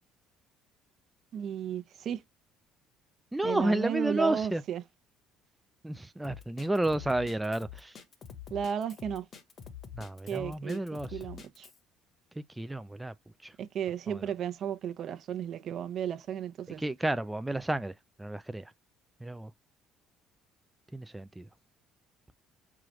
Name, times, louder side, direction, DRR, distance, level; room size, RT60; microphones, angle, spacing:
voice 1, 1.3-2.2 3.4-4.8 8.5-9.3 10.3-10.8 11.1-11.7 13.6-16.8, right 8 dB, 55° right, 0.7 m, -34 dB
voice 2, 3.3-4.6 5.8-8.0 9.9-11.2 12.4-13.1 13.4-13.5 14.1-14.2 16.8-18.7 19.2-19.5 20.9-21.5, right 1 dB, 10° right, 0.3 m, -31 dB
Drum kit, 6.2-11.8, left 8 dB, 45° left, 1.0 m, -46 dB
4.8 x 2.4 x 3.1 m
supercardioid pair, 80°, 0 cm